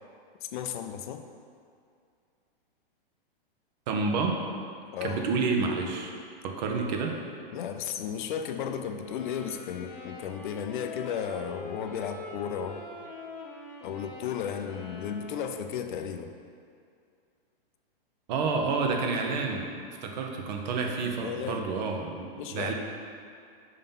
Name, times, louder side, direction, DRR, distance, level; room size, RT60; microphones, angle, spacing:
voice 1, 0.4-1.2 4.9-5.2 7.5-12.9 13.8-16.3 21.2-21.6 22.4-22.7, left 8 dB, 60° left, 7 dB, 0.5 m, -34 dB
voice 2, 3.9-4.4 5.0-6.1 6.4-7.1 18.3-19.7 20.0-22.7, right 4 dB, 50° right, 2 dB, 0.9 m, -29 dB
sound 1, 8.9-15.8, left 2 dB, 40° left, 1.1 m, -44 dB
5.6 x 3.7 x 5.4 m, 2.4 s
hypercardioid pair, 150°, 29 cm